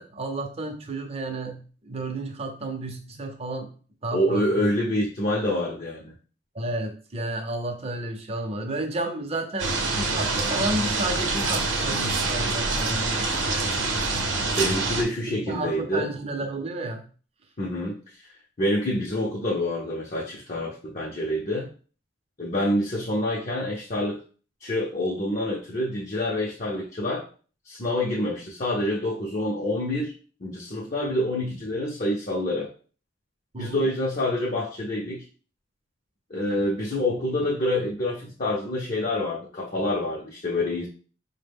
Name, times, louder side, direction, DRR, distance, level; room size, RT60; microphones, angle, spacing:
voice 1, 0.0-3.7 4.0-4.7 6.5-13.3 15.5-17.1 33.5-33.9, right 2 dB, 30° right, 4 dB, 0.6 m, -32 dB
voice 2, 4.1-6.1 14.4-16.1 17.6-18.0 18.6-21.7 22.4-24.2 24.6-27.3 27.7-30.1 30.4-32.7 33.6-35.2 36.3-40.9, left 1 dB, 40° left, -4 dB, 0.6 m, -27 dB
sound 1, 9.6-15.0, right 3 dB, 75° right, 0.7 m, -26 dB
4.5 x 2.2 x 3.4 m, 0.40 s
head